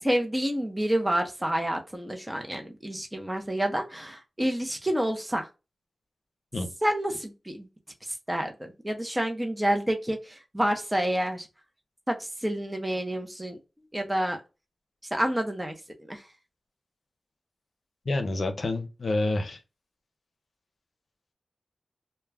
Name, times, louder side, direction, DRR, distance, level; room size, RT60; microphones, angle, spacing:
voice 1, 0.0-5.5 6.8-7.7 8.1-11.5 12.1-13.6 13.9-14.4 15.1-15.7 16.1-16.2, right 1 dB, 15° right, 0.7 m, -28 dB
voice 2, 18.1-19.6, left 2 dB, 65° left, 0.6 m, -28 dB
2.3 x 2.1 x 3.3 m
cardioid pair, 40°, 0 cm